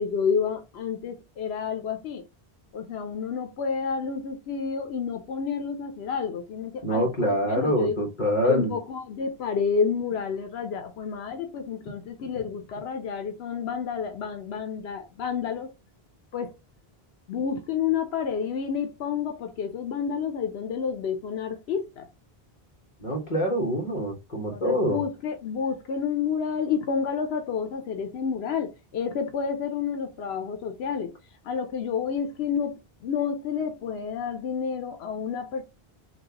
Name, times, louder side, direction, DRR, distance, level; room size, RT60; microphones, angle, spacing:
voice 1, 0.0-2.2 2.7-8.0 8.4-15.7 16.3-16.5 17.3-22.1 24.5-31.1 31.4-35.6, left 6 dB, 90° left, 0.9 m, -30 dB
voice 2, 6.8-8.7 23.0-25.0, equal, 50° left, 1.5 m, -25 dB
6.1 x 2.4 x 2.9 m
omnidirectional pair, 1.0 m